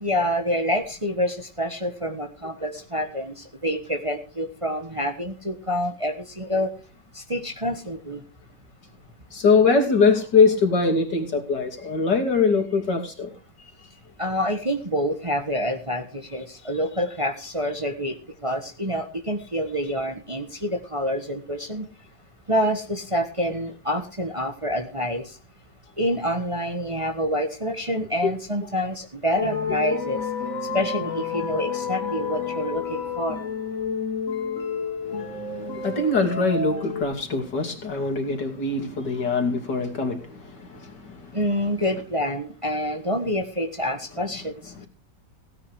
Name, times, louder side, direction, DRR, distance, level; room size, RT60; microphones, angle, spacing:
voice 1, 0.0-3.3 3.6-6.7 7.3-8.2 14.2-18.1 18.4-21.9 22.5-25.2 26.0-30.2 30.7-33.4 41.3-44.5, equal, 20° right, 1.3 m, -27 dB
voice 2, 9.3-13.3 13.6-13.9 28.2-28.3 35.0-41.4 44.7-44.9, left 4 dB, 70° left, 3.2 m, -23 dB
sound 1, 29.4-37.0, left 5 dB, 50° left, 2.0 m, -30 dB
17.0 x 9.5 x 4.8 m
omnidirectional pair, 1.9 m